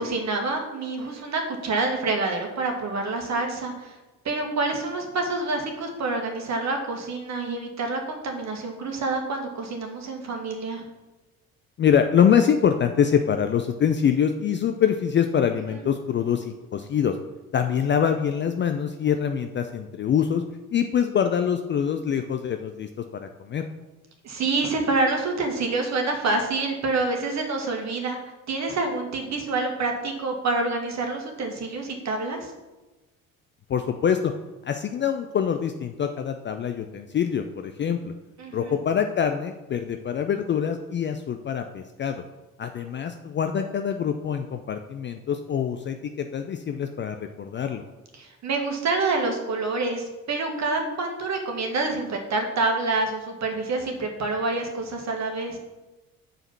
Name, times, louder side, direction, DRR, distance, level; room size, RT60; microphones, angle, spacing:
voice 1, 0.0-4.0 4.3-10.8 15.7-15.8 24.2-28.2 28.5-32.5 38.4-38.8 48.2-55.6, right 3 dB, 40° right, 3 dB, 1.8 m, -27 dB
voice 2, 11.8-17.1 17.5-20.4 20.7-23.6 33.7-34.3 34.6-38.1 38.5-42.2 42.6-47.8, left 8 dB, 25° left, 7 dB, 0.5 m, -24 dB
7.6 x 5.0 x 5.9 m, 1.1 s
figure-of-eight pair, 55°, 43 cm